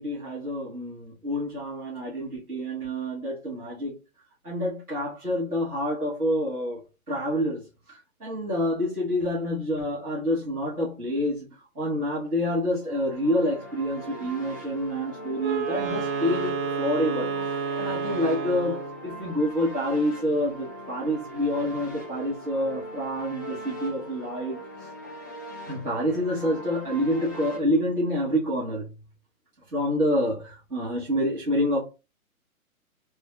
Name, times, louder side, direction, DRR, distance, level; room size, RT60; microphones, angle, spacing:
voice 1, 0.0-4.0 4.4-6.8 7.1-7.6 7.9-11.5 11.7-17.3 17.8-24.6 25.7-29.0 29.7-31.8, equal, 90° right, 1.5 m, -27 dB
sound 1, 12.8-27.6, right 1 dB, 15° left, 0.4 m, -40 dB
Wind instrument woodwind instrument, 15.4-19.1, right 5 dB, 55° right, 1.9 m, -30 dB
3.5 x 3.3 x 2.4 m
figure-of-eight pair, 130°, 43 cm